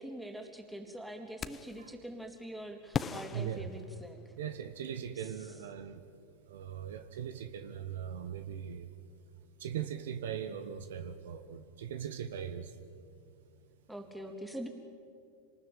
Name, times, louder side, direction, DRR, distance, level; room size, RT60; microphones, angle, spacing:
voice 1, 0.0-4.2 5.2-5.5 13.9-14.7, right 1 dB, 5° right, 3 dB, 3.6 m, -44 dB
sound 1, 1.4-1.9 2.9-4.5, left 6 dB, 25° left, 1.0 m, -38 dB
voice 2, 3.3-3.7 4.4-6.0 6.5-8.9 9.6-12.7, right 9 dB, 70° right, 10 dB, 1.3 m, -40 dB
27.0 x 19.5 x 9.1 m, 2.4 s
hypercardioid pair, 95°, 0 cm